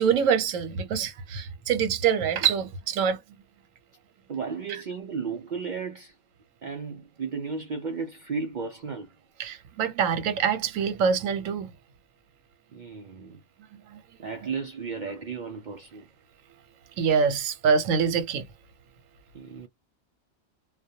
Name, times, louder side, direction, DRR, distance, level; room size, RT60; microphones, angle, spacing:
voice 1, 0.0-3.2 9.4-11.7 13.9-14.0 17.0-18.5, right 7 dB, 85° right, 1.0 m, -25 dB
voice 2, 4.3-6.1 6.6-9.1 12.7-13.4 14.2-16.0 19.3-19.7, right 5 dB, 60° right, 0.5 m, -34 dB
2.2 x 2.2 x 2.7 m
omnidirectional pair, 1.3 m